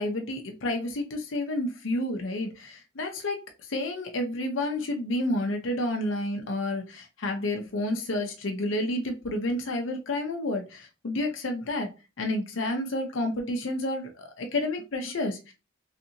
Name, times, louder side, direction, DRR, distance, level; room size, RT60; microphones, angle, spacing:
voice 1, 0.0-3.4 3.7-15.5, left 1 dB, 85° left, 3 dB, 0.7 m, -30 dB
3.3 x 2.8 x 2.6 m, 0.28 s
head